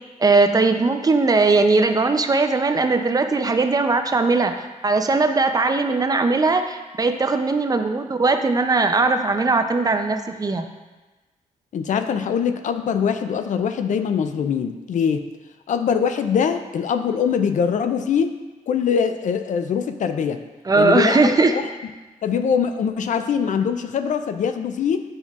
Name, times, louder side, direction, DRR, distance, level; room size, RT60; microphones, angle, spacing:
voice 1, 0.2-4.6 4.8-10.6 20.7-21.6, right 3 dB, 25° right, 7 dB, 0.5 m, -19 dB
voice 2, 11.7-15.3 15.7-18.3 18.7-20.4 20.7-21.6 22.2-25.0, left 7 dB, 65° left, 9 dB, 0.5 m, -23 dB
9.2 x 5.4 x 2.4 m, 1.2 s
cardioid pair, 95°, 14 cm